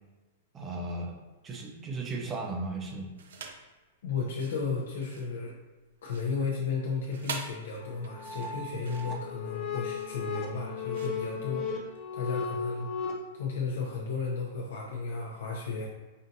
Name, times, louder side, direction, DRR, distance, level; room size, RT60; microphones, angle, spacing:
voice 1, 0.5-1.1 1.4-3.1, right 2 dB, 15° right, 0 dB, 0.6 m, -35 dB
sound 1, 3.2-3.7 4.2-12.0, right 5 dB, 80° right, 0.5 m, -45 dB
voice 2, 4.0-5.6 6.0-11.7 12.1-12.9 13.3-15.9, left 4 dB, 80° left, -2 dB, 0.6 m, -34 dB
sound 2, 7.8-13.1, left 5 dB, 30° left, 0.5 m, -36 dB
5.2 x 2.5 x 2.7 m, 1.2 s
supercardioid pair, 160°, 0 cm